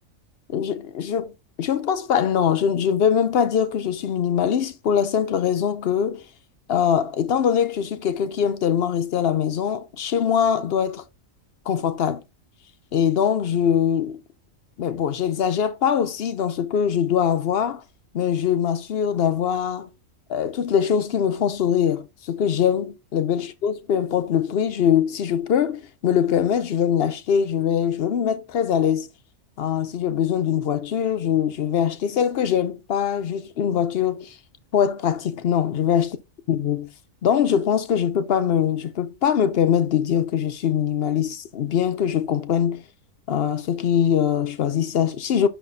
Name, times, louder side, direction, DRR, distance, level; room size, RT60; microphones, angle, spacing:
voice 1, 0.5-1.3 1.6-6.3 6.7-11.0 11.7-12.2 12.9-14.2 14.8-17.8 18.1-19.9 20.3-29.1 29.6-34.4 34.7-36.2 36.5-36.9 37.2-42.8 43.3-45.5, left 8 dB, 60° left, 0.7 m, -22 dB
10.0 x 4.0 x 2.6 m
omnidirectional pair, 1.4 m